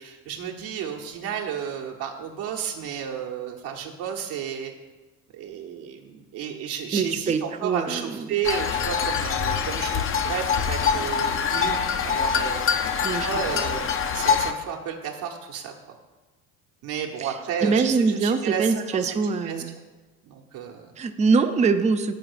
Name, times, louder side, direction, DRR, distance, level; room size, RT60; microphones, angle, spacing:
voice 1, 0.0-4.7 5.3-11.8 12.0-13.8 14.1-15.7 16.8-19.6 20.2-20.9, right 8 dB, 60° right, 1 dB, 1.1 m, -32 dB
voice 2, 6.9-8.3 13.0-13.3 17.2-17.3 17.6-19.8 21.0-22.1, right 4 dB, 15° right, 8 dB, 0.5 m, -23 dB
sound 1, 8.4-14.5, left 6 dB, 30° left, 0.6 m, -24 dB
7.3 x 4.6 x 6.2 m, 1.2 s
hypercardioid pair, 65°, 43 cm